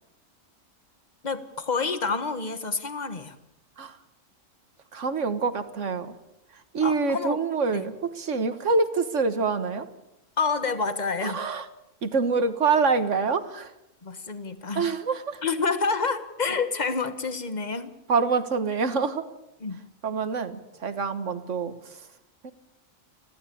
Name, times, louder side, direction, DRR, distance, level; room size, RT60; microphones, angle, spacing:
voice 1, 1.2-3.3 6.8-7.4 7.7-7.9 10.4-11.4 14.0-14.9 15.4-17.9 19.6-19.8, left 4 dB, 35° left, 11 dB, 1.5 m, -28 dB
voice 2, 4.9-6.1 6.7-9.9 11.2-11.7 12.0-13.7 14.8-15.4 18.1-19.2 20.0-21.7 22.4-22.5, right 4 dB, 65° right, 11 dB, 1.8 m, -26 dB
29.5 x 12.0 x 8.6 m, 0.91 s
omnidirectional pair, 1.4 m